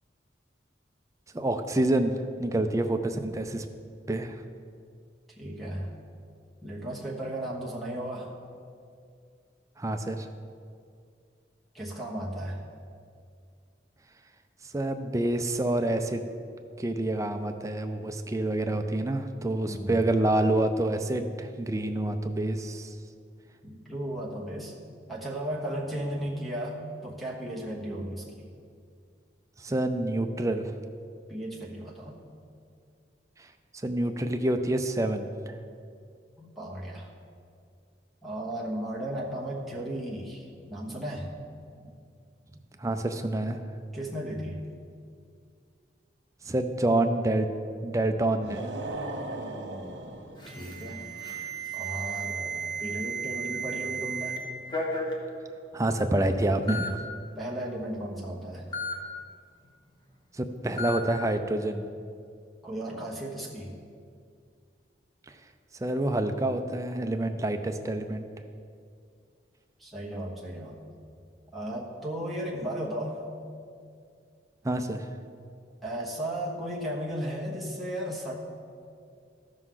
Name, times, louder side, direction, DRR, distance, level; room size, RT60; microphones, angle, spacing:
voice 1, 1.3-2.1 2.4-3.7 4.1-4.4 9.8-10.3 14.7-16.2 16.8-22.9 29.6-30.7 33.4-33.5 33.8-35.6 42.8-43.6 46.4-47.5 47.8-48.7 55.7-57.0 60.3-61.8 65.8-68.3 74.6-75.1, right 1 dB, 20° right, 7 dB, 0.5 m, -27 dB
voice 2, 5.4-5.9 6.6-8.3 11.7-12.6 19.6-20.0 23.6-24.7 25.1-28.5 31.3-32.2 36.4-37.1 38.2-41.4 41.8-41.9 43.9-44.6 50.5-51.0 51.7-54.4 57.4-58.7 62.6-63.7 69.8-70.8 71.5-73.3 75.8-78.3, right 1 dB, ahead, -4 dB, 1.1 m, -35 dB
sound 1, 48.4-50.7, right 2 dB, 80° right, 1.2 m, -37 dB
Alarm, 50.4-54.4 54.7-55.1 56.0-56.1 56.7-56.9 58.7-58.9 60.8-61.0, right 2 dB, 25° left, 1.1 m, -33 dB
13.5 x 6.2 x 3.8 m, 2.3 s
head